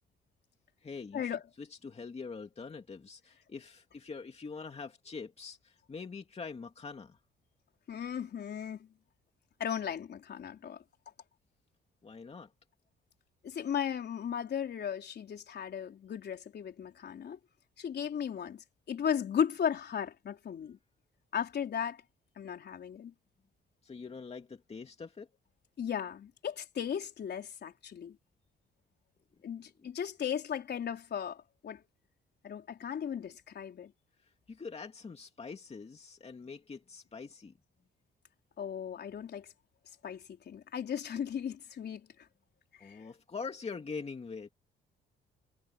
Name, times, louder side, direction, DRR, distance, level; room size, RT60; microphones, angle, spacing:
voice 1, 0.8-7.2 12.0-12.5 23.8-25.3 29.8-29.9 34.2-37.5 42.8-44.5, left 5 dB, 30° left, 2.5 m, -44 dB
voice 2, 7.9-8.9 9.6-10.8 13.4-17.4 17.8-20.8 21.3-22.0 22.4-23.1 25.8-28.2 29.4-31.8 32.4-33.9 38.6-39.5 40.0-42.1 42.8-43.0, left 8 dB, 55° left, 4.1 m, -36 dB
cardioid pair, 90°, 20 cm